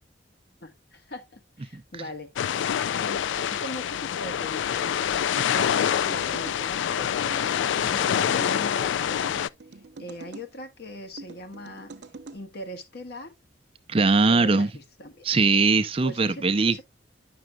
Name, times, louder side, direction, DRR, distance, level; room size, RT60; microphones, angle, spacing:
voice 1, 0.6-2.3 2.7-7.4 7.8-9.4 9.7-11.9 12.3-13.4 14.2-15.3 16.0-16.8, left 1 dB, 60° left, 1.3 m, -40 dB
sound 1, 2.4-9.5, left 9 dB, 80° left, 0.3 m, -26 dB
sound 2, 5.4-6.6 7.3-8.5 9.2-10.5 11.2-12.4, right 3 dB, 75° right, 0.8 m, -44 dB
voice 2, 13.9-14.7 15.2-16.8, right 3 dB, 30° right, 0.5 m, -21 dB
10.0 x 6.2 x 2.2 m
head